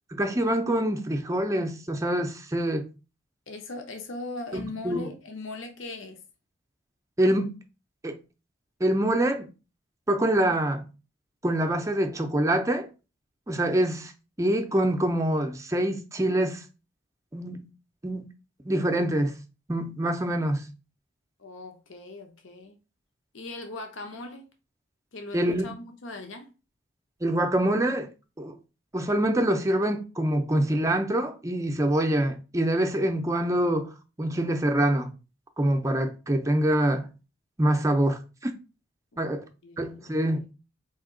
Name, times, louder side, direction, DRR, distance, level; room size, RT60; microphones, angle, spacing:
voice 1, 0.1-2.9 4.5-5.1 7.2-7.5 8.0-8.2 8.8-9.5 10.1-10.9 11.4-12.9 13.5-14.1 14.4-16.6 17.3-17.6 18.0-18.2 18.7-19.4 19.7-20.7 25.3-25.7 27.2-28.1 28.4-28.6 28.9-33.9 34.2-35.1 35.6-37.1 37.6-38.2 39.2-39.4 39.8-40.4, right 1 dB, 15° right, 0.5 m, -25 dB
voice 2, 3.5-6.2 21.4-22.8 23.3-24.5 25.1-26.5 39.1-39.3 39.6-40.1, left 2 dB, 70° left, 0.7 m, -39 dB
4.2 x 2.8 x 3.7 m
head